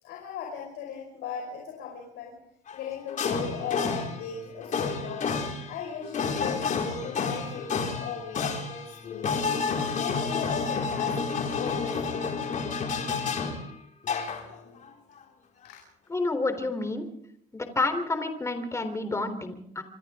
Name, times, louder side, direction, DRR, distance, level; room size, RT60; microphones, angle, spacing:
voice 1, 0.0-2.4 2.7-5.3 5.7-9.5 9.9-12.6 15.6-15.8, left 6 dB, 85° left, 2 dB, 5.1 m, -37 dB
sound 1, 2.7-2.8 3.1-13.7 14.0-14.8, left 5 dB, 50° left, 5.0 m, -30 dB
voice 2, 16.1-17.0 17.5-19.8, left 2 dB, 15° left, 7 dB, 3.4 m, -29 dB
27.5 x 25.5 x 3.7 m, 0.71 s
cardioid pair, 110°, 17 cm